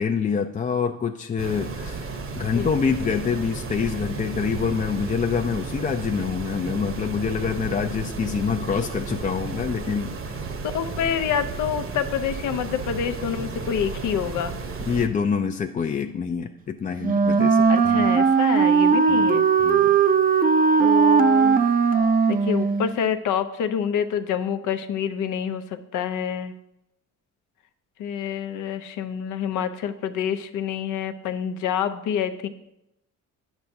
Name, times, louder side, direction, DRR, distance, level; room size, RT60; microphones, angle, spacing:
voice 1, 0.0-10.1 14.9-18.1 19.1-19.2 19.6-20.0, left 6 dB, 25° left, 5 dB, 0.3 m, -26 dB
sound 1, 1.4-15.1, right 4 dB, 45° right, 0.9 m, -33 dB
voice 2, 10.6-14.6 17.7-19.5 20.8-21.6 22.3-26.5 28.0-32.5, left 8 dB, 85° left, 9 dB, 0.6 m, -27 dB
Wind instrument woodwind instrument, 17.0-22.9, right 6 dB, 30° right, 0.5 m, -18 dB
9.3 x 7.0 x 2.7 m, 0.87 s
cardioid pair, 90°, 30 cm